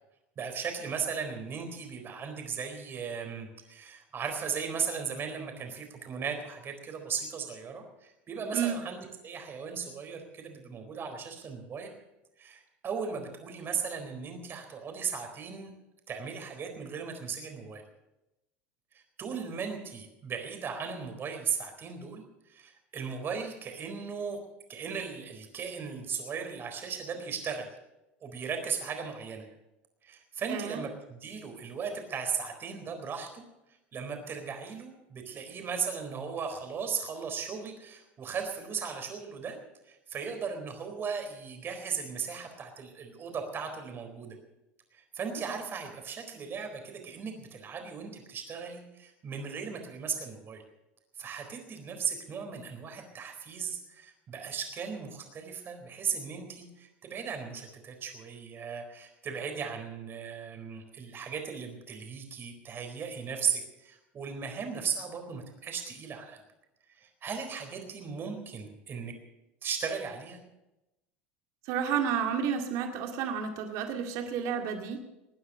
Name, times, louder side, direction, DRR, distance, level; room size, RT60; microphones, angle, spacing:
voice 1, 0.4-11.9 12.4-15.7 16.1-17.8 18.9-24.4 24.7-27.7 28.2-29.5 30.0-33.4 33.9-39.6 39.9-44.4 44.9-50.6 51.2-66.4 66.9-69.1 69.6-70.4, right 6 dB, 35° right, 5 dB, 4.1 m, -37 dB
voice 2, 30.5-30.8 71.6-75.0, right 7 dB, 65° right, 4 dB, 2.1 m, -31 dB
20.5 x 9.8 x 6.7 m, 0.95 s
hypercardioid pair, 90°, 6 cm